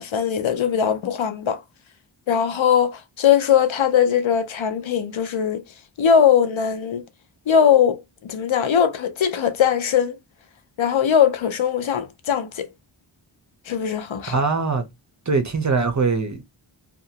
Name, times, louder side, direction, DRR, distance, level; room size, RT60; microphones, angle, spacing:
voice 1, 0.0-1.6 2.3-5.6 6.0-7.0 7.5-10.2 10.8-12.7 13.7-14.4, left 8 dB, 70° left, 0.5 m, -20 dB
voice 2, 14.3-14.8 15.3-16.4, right 4 dB, 35° right, 0.7 m, -22 dB
2.8 x 2.4 x 2.8 m
wide cardioid pair, 55°, 49 cm